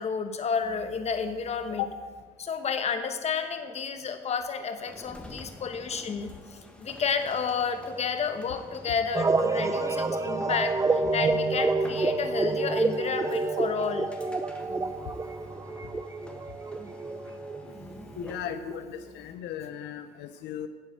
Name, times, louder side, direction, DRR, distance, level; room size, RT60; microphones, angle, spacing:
voice 1, 0.0-1.8 2.4-14.1 14.6-15.0 17.7-18.1 19.3-19.4, left 6 dB, 40° left, 8 dB, 1.1 m, -31 dB
sound 1, 4.8-18.5, left 1 dB, 5° left, 1.3 m, -48 dB
sound 2, 9.1-19.1, right 3 dB, 20° right, 0.6 m, -29 dB
voice 2, 18.1-20.7, left 11 dB, 85° left, 9 dB, 0.6 m, -36 dB
9.7 x 7.5 x 7.7 m, 1.5 s
cardioid pair, 110°, 17 cm